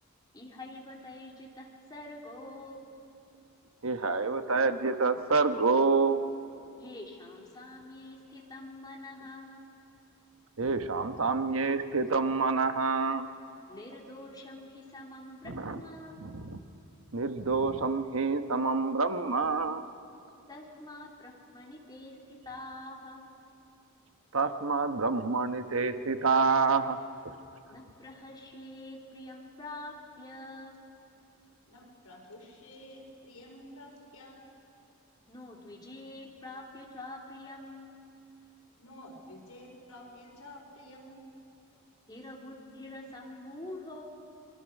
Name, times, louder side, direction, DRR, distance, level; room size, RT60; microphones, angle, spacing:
voice 1, 0.3-2.9 6.8-9.7 13.7-16.3 20.5-22.2 22.4-23.2 27.7-30.8 35.3-38.0 42.1-44.0, left 1 dB, 20° left, -2 dB, 2.9 m, -46 dB
voice 2, 3.8-6.2 10.6-13.3 15.5-15.8 16.2-16.6 17.1-19.8 24.3-27.0, right 4 dB, 65° right, 8 dB, 1.1 m, -27 dB
voice 3, 31.7-34.4 38.8-41.3, left 1 dB, 80° left, 0 dB, 4.7 m, -50 dB
28.5 x 23.0 x 6.5 m, 2.7 s
head